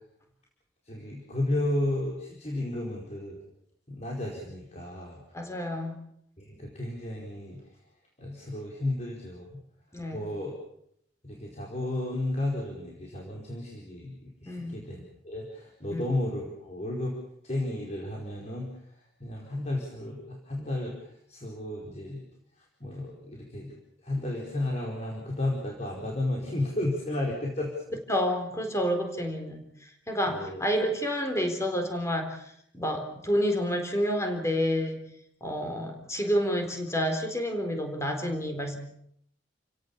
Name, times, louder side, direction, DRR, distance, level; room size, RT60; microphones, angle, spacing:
voice 1, 0.9-3.4 3.9-5.2 6.4-7.6 8.2-9.6 10.1-10.5 11.2-17.2 17.4-18.7 19.2-22.2 22.8-23.8 24.0-27.7 30.2-30.6, left 1 dB, 40° left, -1 dB, 4.6 m, -33 dB
voice 2, 5.3-6.0 9.9-10.3 14.5-14.8 15.9-16.0 28.1-29.6 30.1-32.4 32.7-35.1 35.4-38.8, equal, 15° left, 5 dB, 4.0 m, -29 dB
30.0 x 17.0 x 7.2 m, 0.72 s
head